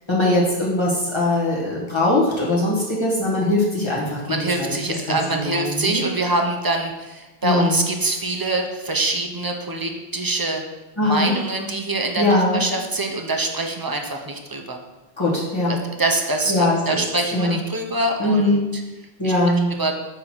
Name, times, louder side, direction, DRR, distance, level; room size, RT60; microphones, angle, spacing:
voice 1, 0.1-4.7 5.1-6.0 7.4-7.8 11.0-11.3 12.2-12.6 15.2-15.8 16.5-17.0 17.3-17.6 18.2-18.6 19.2-19.7, left 1 dB, 25° left, -6 dB, 1.5 m, -21 dB
voice 2, 4.3-10.6 11.0-14.8 15.7-18.6 19.2-19.3 19.6-19.9, right 2 dB, 35° right, 2 dB, 0.4 m, -24 dB
5.7 x 3.8 x 4.5 m, 1.1 s
omnidirectional pair, 1.1 m